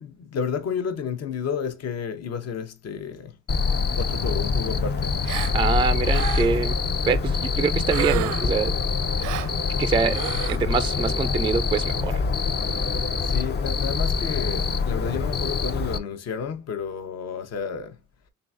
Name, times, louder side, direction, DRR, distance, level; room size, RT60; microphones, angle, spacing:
voice 1, 0.0-3.4 4.0-5.2 12.8-18.0, left 7 dB, 60° left, 0.9 m, -31 dB
Cricket, 3.5-16.0, left 5 dB, 35° left, 0.5 m, -25 dB
Gasp, 5.2-5.6 6.0-6.6 7.9-8.6 9.2-9.5 10.1-10.6, right 11 dB, 85° right, 0.6 m, -30 dB
voice 2, 5.5-6.8 7.1-8.7 9.8-10.2 10.5-12.2, right 5 dB, 15° right, 0.3 m, -25 dB
3.8 x 3.4 x 2.4 m
cardioid pair, 90°, 30 cm